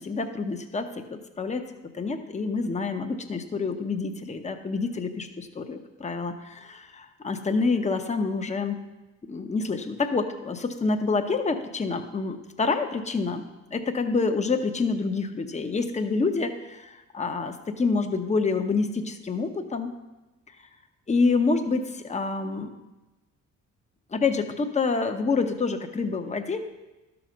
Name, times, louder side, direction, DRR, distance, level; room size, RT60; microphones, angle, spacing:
voice 1, 0.0-8.8 9.3-19.9 21.1-22.7 24.1-26.6, left 4 dB, 25° left, 5 dB, 0.9 m, -27 dB
12.0 x 5.9 x 5.1 m, 1.1 s
cardioid pair, 90°, 30 cm